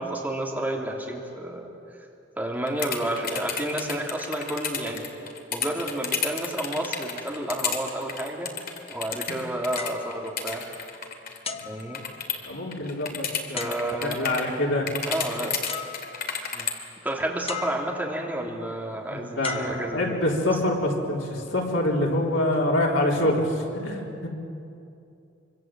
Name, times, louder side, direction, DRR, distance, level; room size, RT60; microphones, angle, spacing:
voice 1, 0.0-1.6 2.4-5.1 5.5-10.6 11.7-12.0 13.5-14.5 15.1-15.5 16.5-16.7 17.0-20.2, right 1 dB, 10° right, -2 dB, 3.5 m, -30 dB
sound 1, 2.7-12.5 12.7-14.5 14.9-16.7, left 7 dB, 50° left, 2.8 m, -31 dB
sound 2, 9.8-11.0 11.4-12.6 13.6-14.3 15.3-15.4 15.7-16.5 17.5-18.3 19.4-20.5 21.3-21.5, left 5 dB, 30° left, 1.2 m, -38 dB
voice 2, 12.5-13.7 14.0-14.9 19.1-24.3, left 1 dB, 80° left, -2 dB, 4.2 m, -26 dB
25.5 x 24.5 x 7.8 m, 2.6 s
head